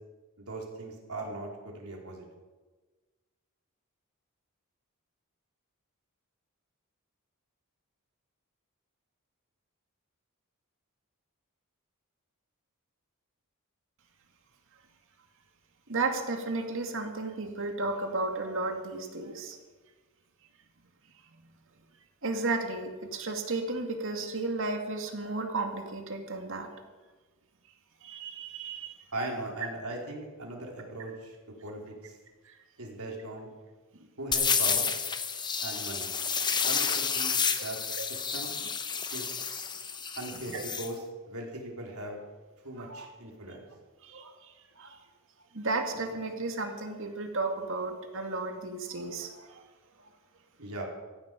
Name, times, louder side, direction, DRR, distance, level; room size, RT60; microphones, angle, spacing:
voice 1, 0.5-2.2 29.1-31.4 31.6-32.1 32.8-33.5 34.2-34.9 35.6-36.1 36.7-37.3 37.6-37.8 38.1-38.5 39.1-39.3 40.1-41.0 41.3-42.2 42.6-43.7 50.6-50.8, right 2 dB, 80° right, 0 dB, 4.1 m, -39 dB
voice 2, 15.9-19.6 22.2-26.7 28.0-29.1 32.4-32.6 33.9-34.1 35.5-35.7 38.0-38.1 40.5-40.6 42.8-43.1 44.0-45.0 45.5-49.6 50.0-50.1, right 3 dB, 60° right, 4 dB, 2.3 m, -34 dB
sound 1, 34.3-40.9, left 6 dB, 20° left, 1.0 m, -30 dB
17.5 x 15.0 x 5.3 m, 1.3 s
head